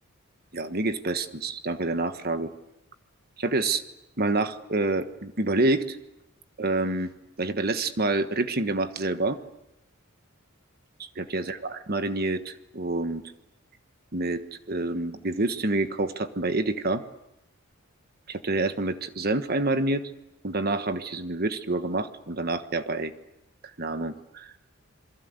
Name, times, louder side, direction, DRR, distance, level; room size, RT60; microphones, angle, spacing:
voice 1, 0.5-2.5 3.4-3.8 4.2-6.0 6.6-7.1 7.4-9.4 11.0-13.2 14.1-17.0 18.3-20.0 20.4-23.1 23.6-24.5, right 2 dB, 45° right, 9 dB, 1.3 m, -27 dB
28.0 x 22.0 x 8.2 m, 0.89 s
head